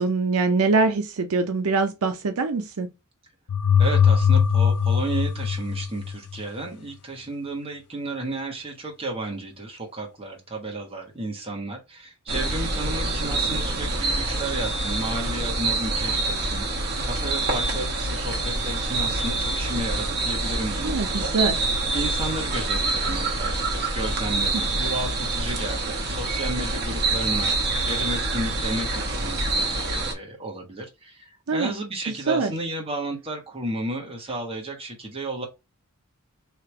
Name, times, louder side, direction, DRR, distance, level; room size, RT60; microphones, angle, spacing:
voice 1, 0.0-2.9 20.8-21.6 24.5-24.7 31.5-31.7 32.3-32.5, right 3 dB, 75° right, 0.6 m, -23 dB
sound 1, 3.5-6.4, left 7 dB, 80° left, 0.4 m, -20 dB
voice 2, 3.8-16.6 17.0-21.3 21.9-35.5, right 2 dB, 25° right, 1.4 m, -33 dB
sound 2, 12.3-30.1, right 2 dB, 45° right, 1.1 m, -26 dB
3.2 x 2.9 x 4.3 m
head